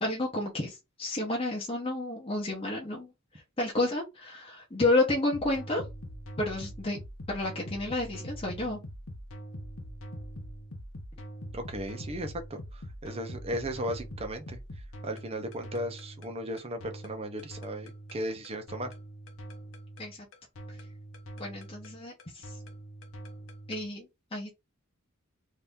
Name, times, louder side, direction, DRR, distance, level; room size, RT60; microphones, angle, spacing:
voice 1, 0.0-3.1 3.6-5.8 6.4-7.0 7.3-8.8 20.0-20.2 21.4-22.4 23.7-24.5, left 2 dB, 25° left, 0.9 m, -30 dB
sound 1, 5.3-23.9, equal, 65° left, 0.8 m, -43 dB
voice 2, 11.5-14.6 15.0-18.9, equal, 30° right, 0.6 m, -36 dB
2.8 x 2.6 x 3.5 m
head